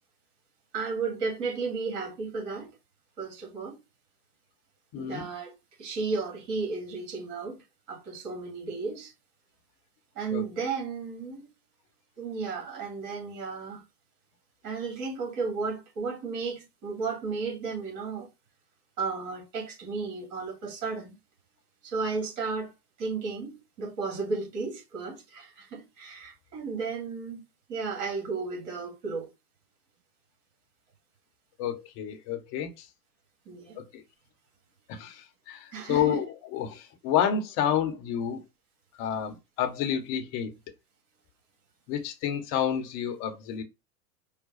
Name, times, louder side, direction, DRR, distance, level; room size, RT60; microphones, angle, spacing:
voice 1, 0.7-2.8 3.2-3.8 5.0-5.5 5.8-7.6 7.9-9.1 10.1-11.5 12.2-13.8 14.6-18.3 19.0-21.2 21.8-22.7 23.0-27.4 27.7-29.3 33.5-33.8 35.7-36.2, right 4 dB, 50° right, 2.5 m, -34 dB
voice 2, 4.9-5.2 10.3-10.4 31.6-32.7 33.8-33.9 35.0-35.2 35.5-38.4 39.0-40.5 41.9-43.6, left 9 dB, 35° left, 1.0 m, -29 dB
4.9 x 2.2 x 4.0 m
hypercardioid pair, 105°, 48 cm